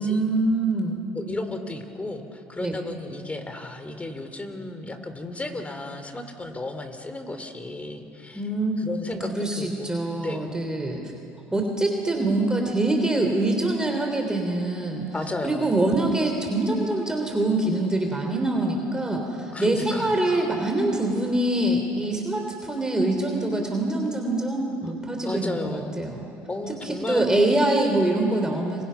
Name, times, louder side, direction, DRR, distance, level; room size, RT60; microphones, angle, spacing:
voice 1, 0.0-1.0 2.6-2.8 8.3-8.7 9.1-11.0 11.5-15.1 15.4-26.3 26.7-28.8, right 2 dB, 10° right, 2 dB, 3.3 m, -24 dB
voice 2, 1.1-8.4 8.8-9.3 9.6-10.5 15.1-15.7 19.5-20.5 25.2-26.0 26.5-27.3, left 2 dB, 20° left, 7 dB, 3.3 m, -34 dB
30.0 x 26.0 x 5.8 m, 2.6 s
supercardioid pair, 85°, 7 cm